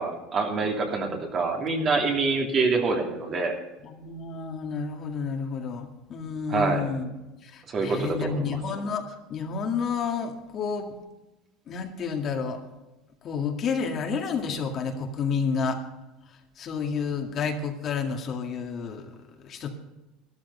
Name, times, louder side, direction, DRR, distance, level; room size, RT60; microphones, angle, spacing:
voice 1, 0.0-3.5 6.5-6.9 7.7-8.6, right 4 dB, 35° right, 1 dB, 2.9 m, -26 dB
voice 2, 3.8-7.1 7.4-9.0 9.3-10.9 11.7-12.6 13.2-15.8 16.6-19.1 19.4-19.7, left 5 dB, 40° left, 3 dB, 2.0 m, -30 dB
13.0 x 12.0 x 5.5 m, 0.99 s
supercardioid pair, 125°, 0 cm